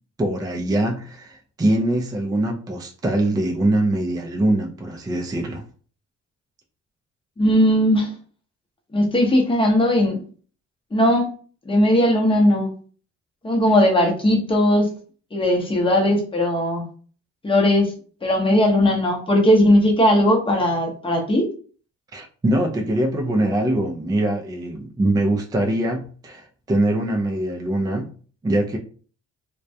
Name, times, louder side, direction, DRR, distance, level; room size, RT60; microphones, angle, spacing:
voice 1, 0.2-5.6 22.1-28.1 28.4-28.8, right 1 dB, 15° right, 0.4 m, -23 dB
voice 2, 7.4-8.1 8.9-10.2 10.9-11.3 11.7-12.7 13.4-14.9 15.3-16.8 17.4-17.9 18.2-21.5, left 1 dB, 15° left, 0.8 m, -18 dB
2.2 x 2.2 x 2.6 m
cardioid pair, 90°, 30 cm